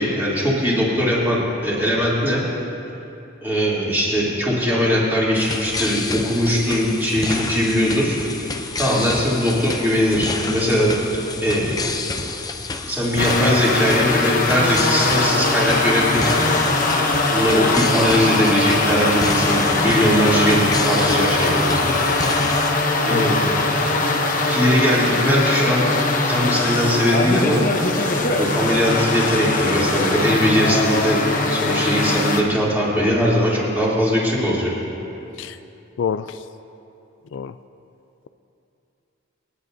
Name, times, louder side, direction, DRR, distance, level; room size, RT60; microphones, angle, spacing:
voice 1, 0.0-2.4 3.4-8.2 8.8-10.9 11.4-11.7 12.8-16.4 17.3-21.9 23.0-23.8 24.4-25.8 26.3-27.6 27.9-31.2 31.5-34.7, equal, 10° right, -8 dB, 3.2 m, -20 dB
sound 1, 5.3-22.7, left 3 dB, 20° left, 0.5 m, -30 dB
sound 2, 13.2-32.4, left 2 dB, 45° left, 1.0 m, -21 dB
voice 2, 36.0-36.4 37.3-37.5, left 7 dB, 70° left, 12 dB, 0.3 m, -27 dB
28.5 x 9.8 x 2.7 m, 2.8 s
head